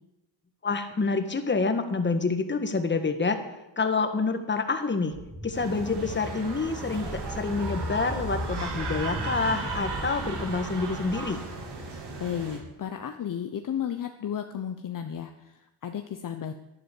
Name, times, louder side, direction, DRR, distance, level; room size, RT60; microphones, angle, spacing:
voice 1, 0.6-3.4 3.8-5.1 5.4-11.4, left 4 dB, 25° left, 7 dB, 1.7 m, -27 dB
sound 1, 5.1-12.2, left 1 dB, ahead, 1.5 m, -38 dB
sound 2, 5.5-12.6, right 4 dB, 60° right, 3.7 m, -36 dB
voice 2, 12.2-16.5, left 9 dB, 45° left, 6 dB, 0.9 m, -33 dB
12.0 x 11.0 x 8.6 m, 0.94 s
cardioid pair, 125°, 46 cm